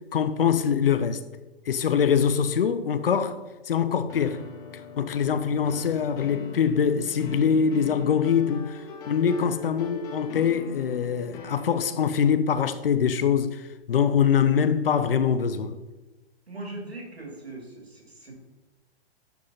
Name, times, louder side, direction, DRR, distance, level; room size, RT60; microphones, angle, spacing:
voice 1, 0.1-1.2 1.7-4.4 5.0-8.8 9.0-15.8, left 7 dB, 65° left, 0.6 m, -23 dB
sound 1, 4.1-12.4, left 4 dB, 15° left, 0.4 m, -42 dB
voice 2, 16.5-18.3, right 2 dB, 85° right, 2.5 m, -40 dB
10.5 x 4.9 x 2.8 m
figure-of-eight pair, 120°, 31 cm